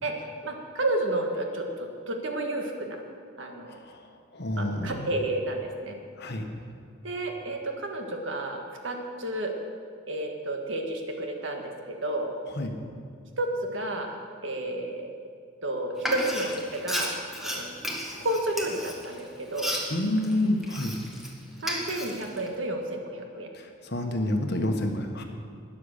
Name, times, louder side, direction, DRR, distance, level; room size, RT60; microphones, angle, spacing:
voice 1, 0.0-3.0 3.4-3.8 4.6-6.0 7.0-9.5 10.1-12.3 13.4-14.2 14.4-15.1 15.6-17.1 17.4-17.7 18.2-19.7 21.6-23.5, right 1 dB, 70° right, 2 dB, 1.7 m, -31 dB
voice 2, 3.7-5.0 6.2-6.4 12.5-12.7 19.9-20.9 23.5-25.2, left 1 dB, 55° left, 4 dB, 1.4 m, -29 dB
Frying (food), 16.0-21.3 21.6-22.5, equal, ahead, 1.7 m, -33 dB
12.5 x 10.0 x 6.6 m, 2.2 s
head